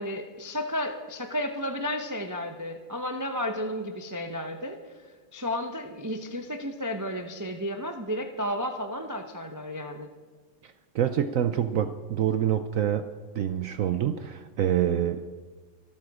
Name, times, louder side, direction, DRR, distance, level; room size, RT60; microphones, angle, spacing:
voice 1, 0.0-4.8 5.3-10.1, equal, 25° right, 5 dB, 0.3 m, -32 dB
voice 2, 10.9-13.1 13.3-15.3, right 10 dB, 75° right, 9 dB, 0.7 m, -26 dB
25.0 x 9.0 x 4.9 m, 1.4 s
omnidirectional pair, 2.1 m